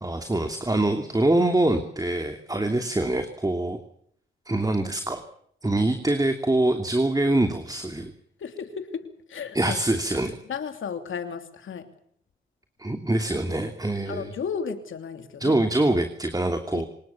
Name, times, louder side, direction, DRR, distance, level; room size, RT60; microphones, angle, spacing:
voice 1, 0.0-3.8 4.5-5.2 5.6-8.1 9.5-10.3 12.8-14.3 15.4-16.8, right 1 dB, 20° right, 6 dB, 2.8 m, -24 dB
voice 2, 8.4-9.8 10.5-11.9 14.1-15.6 16.7-16.8, left 6 dB, 80° left, 7 dB, 2.9 m, -34 dB
26.0 x 19.5 x 7.1 m, 0.65 s
cardioid pair, 60°, 20 cm